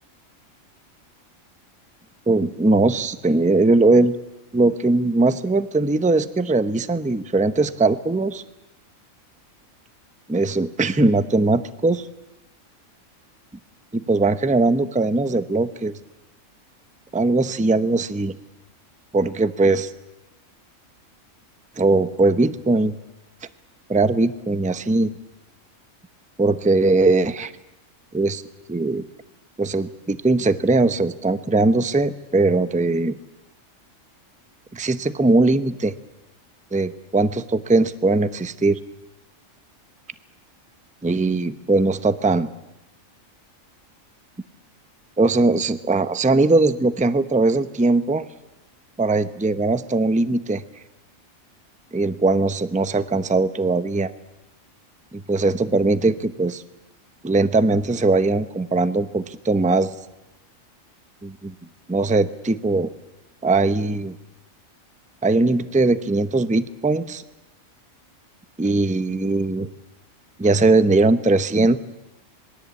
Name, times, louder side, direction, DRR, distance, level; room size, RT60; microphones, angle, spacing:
voice 1, 2.3-4.2 4.5-8.4 10.3-12.1 13.9-15.9 17.1-18.3 19.1-19.9 21.8-22.9 23.9-25.1 26.4-27.5 28.1-28.4 28.7-29.0 29.6-33.2 34.7-35.9 36.7-38.8 41.0-42.5 45.2-48.3 49.0-50.6 51.9-54.1 55.1-56.6 57.2-60.0 61.2-61.5 61.9-62.9 63.4-64.2 65.2-67.2 68.6-69.7 70.4-71.8, right 3 dB, 5° right, 12 dB, 0.6 m, -20 dB
26.5 x 21.5 x 8.4 m, 0.96 s
omnidirectional pair, 1.4 m